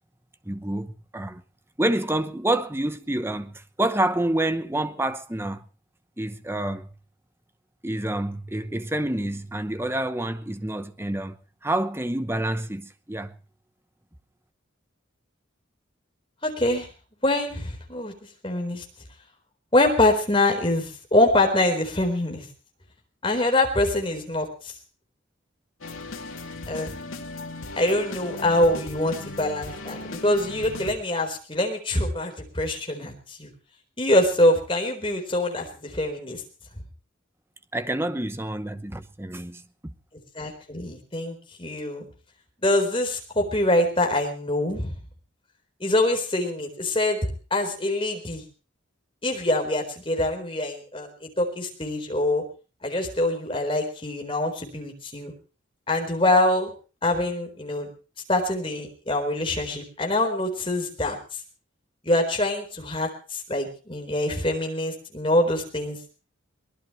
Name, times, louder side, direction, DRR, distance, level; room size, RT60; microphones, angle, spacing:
voice 1, 0.4-1.4 1.8-5.6 6.2-6.9 7.8-11.4 11.6-13.3 37.7-39.9, right 1 dB, 10° right, 0.8 m, -28 dB
voice 2, 16.4-16.9 17.2-18.1 18.4-18.8 19.7-22.5 23.2-24.7 26.7-26.9 27.8-33.5 34.0-36.4 40.3-42.1 42.6-44.9 45.8-48.4 49.2-52.4 52.8-55.3 55.9-56.7 57.0-57.9 58.3-61.2 62.0-66.0, left 1 dB, 25° left, 4.2 m, -24 dB
sound 1, 25.8-30.9, left 2 dB, 85° left, 2.7 m, -37 dB
23.0 x 19.0 x 3.1 m
head